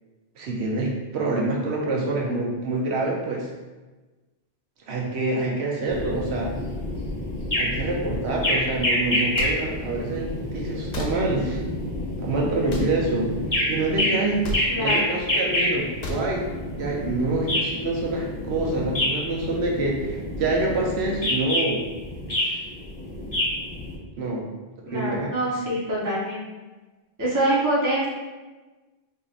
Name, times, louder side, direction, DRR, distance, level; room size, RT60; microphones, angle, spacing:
voice 1, 0.4-3.5 4.9-6.5 7.6-11.6 12.2-13.3 13.7-14.5 14.8-16.5 16.8-21.8 22.4-22.6 24.2-24.4 24.9-25.3, right 2 dB, 85° right, -2 dB, 0.9 m, -26 dB
sound 1, 5.9-24.0, left 1 dB, 25° left, 0.9 m, -28 dB
sound 2, 9.3-9.5 10.9-11.1 12.7-12.9 14.4-14.6 16.0-16.2, left 2 dB, 50° left, 0.5 m, -30 dB
voice 2, 24.9-26.4 27.2-28.1, right 1 dB, 20° right, -6 dB, 0.8 m, -25 dB
4.1 x 2.8 x 2.4 m, 1.2 s
omnidirectional pair, 1.1 m